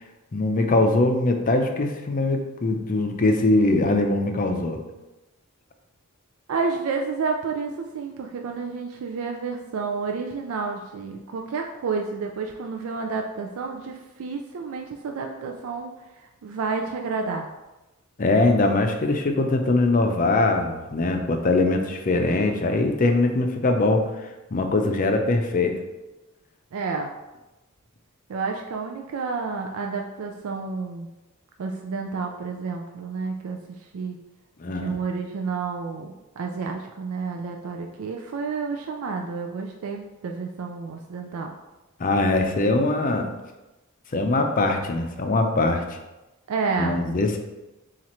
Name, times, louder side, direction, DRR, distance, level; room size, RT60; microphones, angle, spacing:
voice 1, 0.3-4.8 18.2-24.1 24.5-25.8 34.6-35.0 42.0-43.3 44.1-46.0 46.8-47.4, left 2 dB, 40° left, 4 dB, 0.5 m, -22 dB
voice 2, 6.5-17.5 26.7-27.1 28.3-31.1 31.6-34.2 34.7-41.5 46.5-47.0, right 4 dB, 70° right, 2 dB, 0.4 m, -30 dB
7.2 x 2.5 x 3.0 m, 1.0 s
head